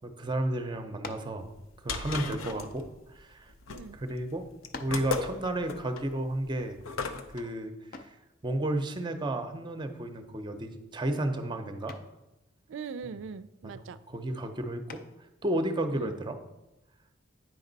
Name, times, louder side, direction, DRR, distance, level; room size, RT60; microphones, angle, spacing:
voice 1, 0.0-1.5 1.8-3.5 4.0-4.5 4.8-6.8 7.3-8.1 8.4-12.0 14.1-15.0 15.4-16.4, right 1 dB, 25° right, 7 dB, 0.6 m, -32 dB
sound 1, 1.0-1.4 2.3-3.5 4.2-4.3 4.7-5.1 7.9-8.3 10.2-10.6 10.9-11.3 11.9-12.2 14.9-15.3, left 3 dB, 45° left, 0.5 m, -45 dB
sound 2, 1.5-7.4, left 4 dB, 85° left, 0.6 m, -37 dB
voice 2, 3.7-4.0 12.7-14.0 15.9-16.2, right 5 dB, 65° right, 15 dB, 0.4 m, -42 dB
9.2 x 5.2 x 3.9 m, 0.99 s
head